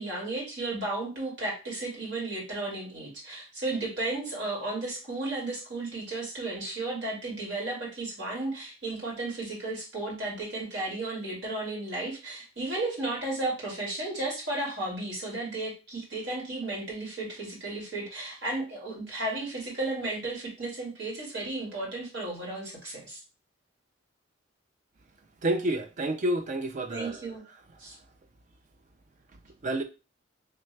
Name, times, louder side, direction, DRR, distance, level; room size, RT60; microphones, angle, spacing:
voice 1, 0.0-23.2 26.9-27.4 27.8-27.9, right 2 dB, 60° right, 1.7 m, -34 dB
voice 2, 25.4-27.4 29.6-29.8, right 1 dB, 40° right, 0.4 m, -29 dB
3.2 x 2.3 x 3.1 m
head